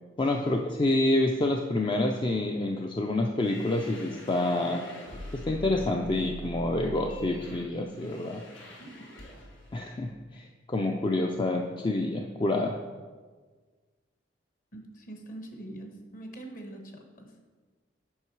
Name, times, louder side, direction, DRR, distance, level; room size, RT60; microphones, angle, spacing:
voice 1, 0.2-4.8 5.3-8.4 9.7-12.8, left 2 dB, 25° left, 2 dB, 0.4 m, -28 dB
sound 1, 3.3-9.8, equal, 90° left, 1.5 m, -44 dB
voice 2, 14.7-17.3, right 1 dB, 45° left, 4 dB, 1.1 m, -44 dB
8.6 x 5.4 x 4.6 m, 1.4 s
head